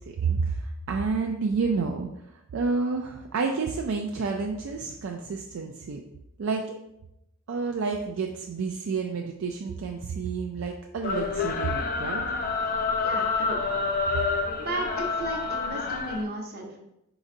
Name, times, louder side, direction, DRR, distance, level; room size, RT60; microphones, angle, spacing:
voice 1, 0.0-2.2 2.5-6.0 6.4-6.6 7.5-12.2 13.4-13.5, right 4 dB, 65° right, 2 dB, 0.4 m, -29 dB
sound 1, 11.0-16.2, left 4 dB, 40° left, 0.4 m, -28 dB
voice 2, 13.0-13.6 14.6-16.8, right 2 dB, 45° right, 0 dB, 0.9 m, -34 dB
5.0 x 3.9 x 2.6 m, 0.85 s
head